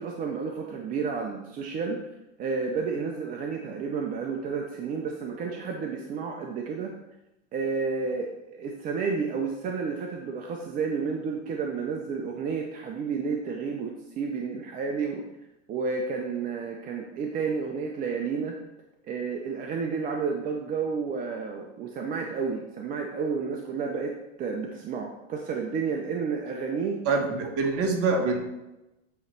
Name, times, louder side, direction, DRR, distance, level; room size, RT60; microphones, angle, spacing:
voice 1, 0.0-2.0 2.4-6.9 7.5-15.2 15.7-18.5 19.1-24.1 24.4-27.0, right 5 dB, 20° right, 1 dB, 0.5 m, -31 dB
voice 2, 27.0-28.4, right 3 dB, 40° right, 3 dB, 1.3 m, -25 dB
8.5 x 3.1 x 4.4 m, 0.96 s
hypercardioid pair, 125°, 38 cm